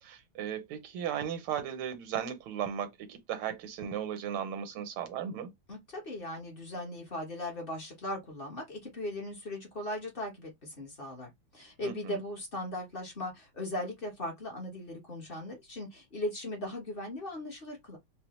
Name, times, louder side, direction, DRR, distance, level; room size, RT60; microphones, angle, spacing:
voice 1, 0.0-5.5 11.8-12.2, right 9 dB, 85° right, 1.7 m, -36 dB
voice 2, 5.7-18.0, left 1 dB, 40° left, 0.8 m, -38 dB
4.6 x 2.1 x 3.0 m
omnidirectional pair, 2.3 m